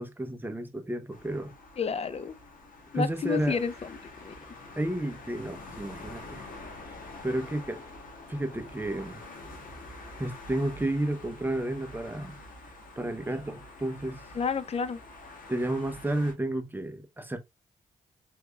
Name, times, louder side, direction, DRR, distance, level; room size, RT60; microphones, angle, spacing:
voice 1, 0.0-1.5 2.9-3.6 4.8-6.5 7.2-7.8 8.3-9.2 10.2-12.4 13.0-14.2 15.5-17.4, right 1 dB, 15° right, 0.8 m, -31 dB
sound 1, 1.1-16.3, left 2 dB, 80° left, 1.3 m, -46 dB
voice 2, 1.8-2.4 2.9-3.9 4.2-4.3 14.3-15.0, left 6 dB, 45° left, 0.5 m, -30 dB
3.5 x 3.2 x 2.3 m
cardioid pair, 60°, 14 cm